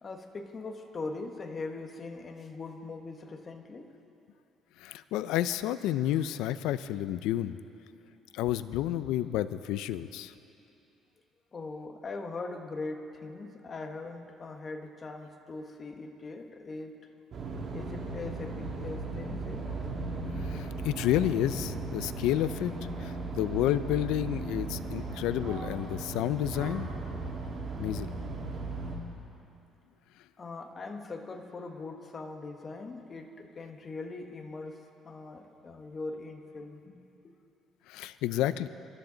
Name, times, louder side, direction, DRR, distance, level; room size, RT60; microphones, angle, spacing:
voice 1, 0.0-4.0 11.5-17.0 17.7-19.7 30.4-37.0, left 3 dB, 30° left, 4 dB, 1.2 m, -41 dB
voice 2, 4.8-7.6 8.3-10.3 20.4-22.7 23.0-26.9 27.8-28.1 37.9-38.7, left 13 dB, 90° left, 14 dB, 0.5 m, -30 dB
sound 1, 17.3-29.0, right 3 dB, 45° right, 2.3 m, -37 dB
25.0 x 13.0 x 3.9 m, 2.7 s
cardioid pair, 135°, 0 cm